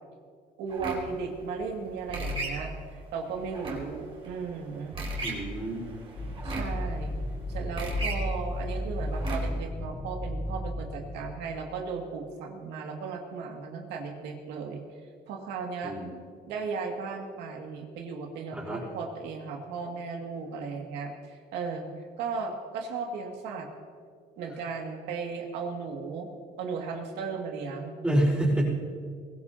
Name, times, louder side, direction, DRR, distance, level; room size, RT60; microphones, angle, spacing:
voice 1, 0.6-5.0 6.4-7.2 7.5-14.8 15.3-16.0 16.4-21.9 22.2-23.7 24.4-26.3 26.6-28.0, right 5 dB, 85° right, 1 dB, 2.3 m, -36 dB
sound 1, 0.7-9.7, right 2 dB, 35° right, 4.1 m, -37 dB
voice 2, 5.2-5.8 15.8-16.1 18.5-18.8 28.0-28.7, right 1 dB, 5° right, -5 dB, 4.7 m, -27 dB
sound 2, 6.2-11.2, left 1 dB, 40° left, 1.6 m, -33 dB
23.0 x 16.5 x 2.9 m, 2.1 s
cardioid pair, 110°, 17 cm